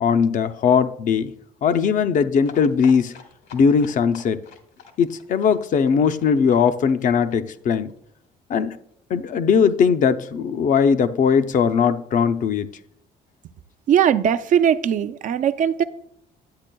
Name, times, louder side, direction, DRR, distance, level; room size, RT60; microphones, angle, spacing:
voice 1, 0.0-1.3 1.6-3.1 3.5-4.4 5.0-7.9 8.5-8.8 9.1-12.7, left 6 dB, 50° left, 0.5 m, -19 dB
sound 1, 2.4-8.0 8.2-8.3 8.6-8.7 8.9-9.0, left 6 dB, 75° left, 1.6 m, -46 dB
voice 2, 13.9-15.8, right 9 dB, 50° right, 0.4 m, -19 dB
10.5 x 8.3 x 2.2 m
cardioid pair, 110°, 17 cm